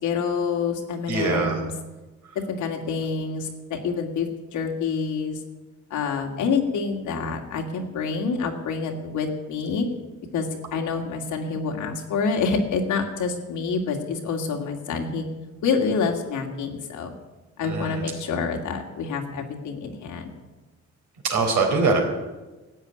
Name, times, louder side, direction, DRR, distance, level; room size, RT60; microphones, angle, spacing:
voice 1, 0.0-1.7 2.5-5.4 5.9-9.9 10.3-15.2 15.6-17.1 17.6-20.4, left 5 dB, 75° left, 3 dB, 2.4 m, -27 dB
voice 2, 1.1-1.6 17.6-18.0 21.2-22.0, right 4 dB, 75° right, 2 dB, 3.9 m, -23 dB
13.0 x 8.2 x 9.9 m, 1.2 s
cardioid pair, 90°, 30 cm